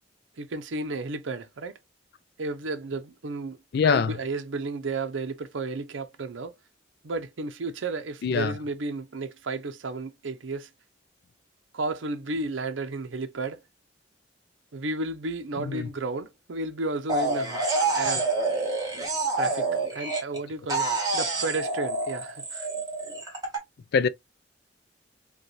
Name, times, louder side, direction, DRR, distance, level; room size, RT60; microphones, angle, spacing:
voice 1, 0.4-1.8 2.4-3.6 3.8-6.5 7.0-10.7 11.7-13.6 14.7-17.6 17.9-18.3 19.4-22.7, right 3 dB, 85° right, 0.6 m, -33 dB
voice 2, 3.7-4.2 8.2-8.5 15.6-15.9 23.9-24.1, left 5 dB, 55° left, 0.3 m, -23 dB
sound 1, 17.1-20.4 20.7-23.6, right 3 dB, 20° right, 1.4 m, -27 dB
5.1 x 2.3 x 3.1 m
head